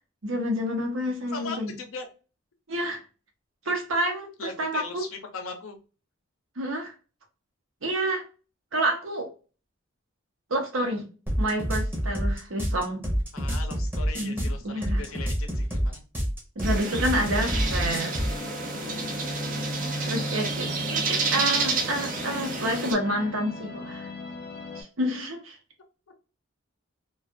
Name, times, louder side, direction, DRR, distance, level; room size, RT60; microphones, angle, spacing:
voice 1, 0.2-1.7 2.7-3.0 3.7-5.0 6.6-6.9 7.8-8.2 8.7-9.3 10.5-11.1 11.4-13.0 14.2-15.0 16.6-18.2 20.1-24.1 24.8-25.6, right 1 dB, 80° right, 0.8 m, -29 dB
voice 2, 1.3-2.1 3.6-3.8 4.4-5.8 13.3-16.0, left 4 dB, 90° left, 0.7 m, -39 dB
sound 1, 11.3-18.4, equal, 10° right, 0.8 m, -27 dB
sound 2, 16.6-22.9, right 4 dB, 40° right, 0.5 m, -30 dB
sound 3, 17.5-24.8, left 1 dB, 45° left, 0.5 m, -36 dB
2.4 x 2.4 x 2.5 m
head